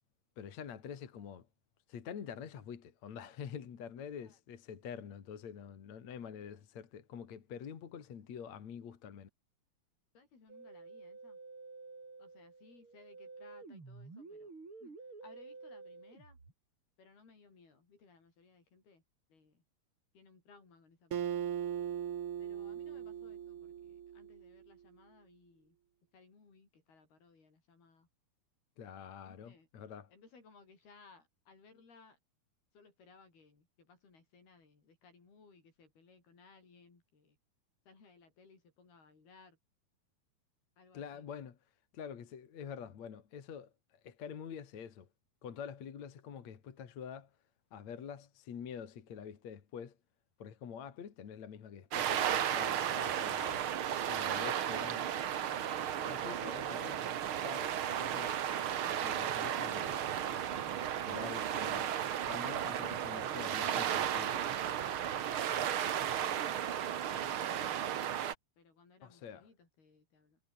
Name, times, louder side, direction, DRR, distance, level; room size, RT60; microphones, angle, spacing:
voice 1, 0.4-1.5 1.9-9.3 28.8-30.1 40.9-41.6 41.9-45.1 45.4-47.3 47.7-50.0 50.4-53.7 54.0-55.0 56.0-58.5 59.0-60.1 61.0-62.0 62.3-64.5 69.0-69.5, left 7 dB, 50° left, 3.2 m, -47 dB
voice 2, 10.2-11.4 12.2-14.5 14.8-15.0 15.2-16.4 17.0-19.0 19.3-19.6 20.1-21.5 22.4-25.8 26.1-28.1 29.3-29.7 30.1-32.2 32.7-37.4 37.9-39.6 40.8-41.3 52.6-53.6 54.1-54.7 66.2-66.7 67.1-67.9 68.6-70.4, left 4 dB, 75° left, 9.0 m, -62 dB
Musical instrument, 10.5-16.5, right 3 dB, 35° right, 5.5 m, -51 dB
Acoustic guitar, 21.1-24.6, right 9 dB, 65° right, 1.4 m, -39 dB
sound 1, 51.9-68.3, right 10 dB, 85° right, 1.1 m, -34 dB
omnidirectional pair, 4.5 m